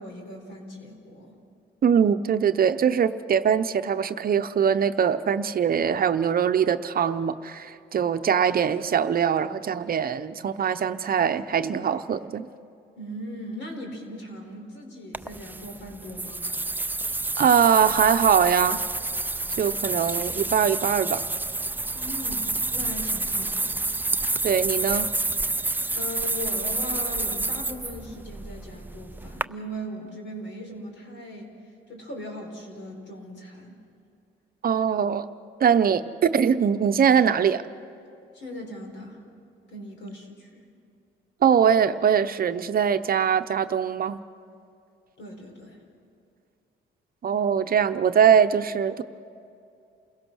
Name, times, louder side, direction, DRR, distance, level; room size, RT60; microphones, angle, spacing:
voice 1, 0.0-1.4 13.0-16.4 21.9-23.8 25.9-31.5 31.9-33.8 38.3-39.2 39.7-40.7 45.2-45.8, equal, 70° left, 3 dB, 4.6 m, -39 dB
voice 2, 1.8-12.5 17.4-18.8 19.6-21.2 24.4-25.1 34.6-35.3 35.6-37.6 41.4-44.2 47.2-49.0, right 7 dB, 50° right, 10 dB, 0.7 m, -22 dB
sound 1, 15.1-29.4, right 2 dB, 10° right, 0.4 m, -29 dB
28.5 x 16.5 x 6.2 m, 2.5 s
cardioid pair, 90°, 20 cm